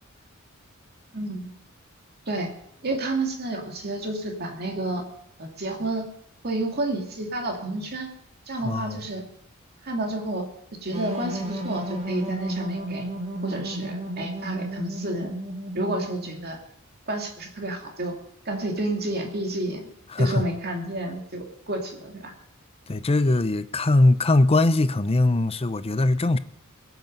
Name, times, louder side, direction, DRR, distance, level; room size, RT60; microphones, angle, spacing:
voice 1, 1.1-1.5 2.3-2.5 2.8-5.1 5.4-6.1 6.4-8.1 8.5-9.2 9.8-10.5 10.8-13.1 13.4-15.3 15.7-16.6 17.1-18.2 18.5-19.9 20.2-22.3, right 2 dB, 50° right, 2.6 m, -30 dB
voice 2, 8.6-9.0 20.1-20.5 22.9-26.4, left 2 dB, 30° left, 0.6 m, -21 dB
sound 1, 10.9-16.5, right 1 dB, 30° right, 1.9 m, -33 dB
21.0 x 8.2 x 5.3 m
head